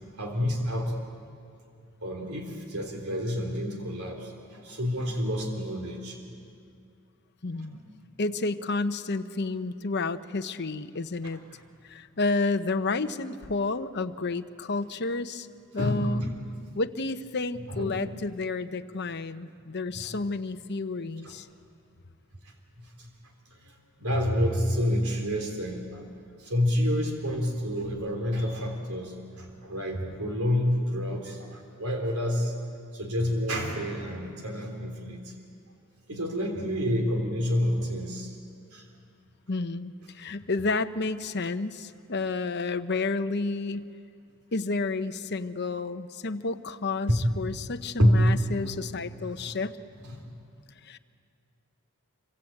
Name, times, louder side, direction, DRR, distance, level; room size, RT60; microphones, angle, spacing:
voice 1, 0.2-1.0 2.0-6.2 11.5-11.6 15.7-16.3 17.5-18.1 20.0-20.1 21.2-21.3 22.4-23.1 23.5-32.5 32.9-35.3 36.1-38.4 38.7-38.9 47.1-47.3 48.0-48.3 48.6-48.7 49.4-49.6 50.0-50.3, equal, 80° right, 3 dB, 3.5 m, -28 dB
voice 2, 7.4-7.8 8.2-11.4 11.8-15.5 15.7-16.2 16.7-21.5 39.5-43.9 44.5-49.8 50.8-51.0, left 3 dB, 50° left, 9 dB, 0.9 m, -30 dB
26.5 x 24.5 x 8.7 m, 2.4 s
head